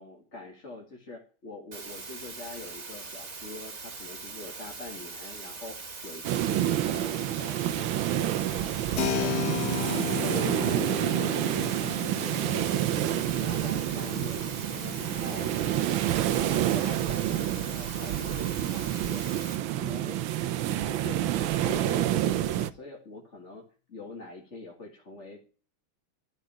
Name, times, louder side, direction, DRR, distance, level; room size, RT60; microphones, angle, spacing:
voice 1, 0.0-5.8 6.0-9.3 9.7-13.2 13.4-19.3 19.7-20.3 20.8-23.6 23.9-25.5, left 2 dB, 35° left, -1 dB, 2.3 m, -44 dB
sound 1, 1.7-19.6, right 4 dB, 35° right, 2.1 m, -42 dB
sound 2, 6.2-22.7, right 12 dB, 75° right, 1.5 m, -28 dB
Keyboard (musical), 9.0-17.3, left 7 dB, 75° left, 0.6 m, -36 dB
13.0 x 5.1 x 9.1 m, 0.37 s
omnidirectional pair, 2.3 m